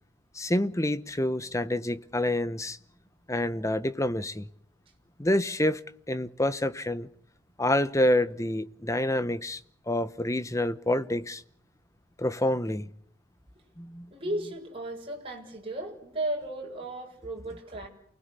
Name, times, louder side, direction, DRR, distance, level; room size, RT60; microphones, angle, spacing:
voice 1, 0.3-2.8 3.3-4.5 5.2-7.1 7.6-9.6 9.9-11.4 12.2-12.9 13.8-14.1, left 1 dB, 15° left, 1.0 m, -27 dB
voice 2, 14.1-17.9, right 1 dB, 25° right, 6.9 m, -35 dB
29.0 x 20.0 x 8.3 m
head